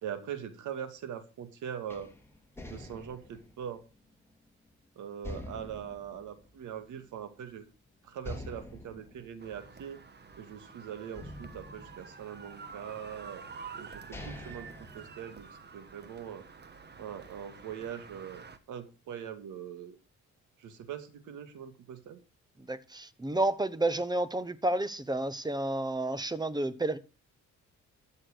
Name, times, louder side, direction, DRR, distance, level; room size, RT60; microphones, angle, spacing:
voice 1, 0.0-2.1 2.6-3.8 5.0-7.6 8.0-10.0 10.4-13.4 13.7-14.7 14.9-15.5 15.7-16.4 17.0-20.0 20.6-22.2, right 8 dB, 80° right, 2.3 m, -42 dB
sound 1, 1.9-4.7 5.2-7.2 7.5-7.6 8.2-10.6 11.1-12.7 13.5-13.6 13.9-15.7, left 1 dB, 10° left, 2.8 m, -46 dB
sound 2, 9.4-18.6, right 5 dB, 35° right, 1.6 m, -49 dB
voice 2, 22.7-27.0, right 2 dB, 15° right, 1.0 m, -30 dB
14.0 x 6.6 x 6.5 m
cardioid pair, 90°, 30 cm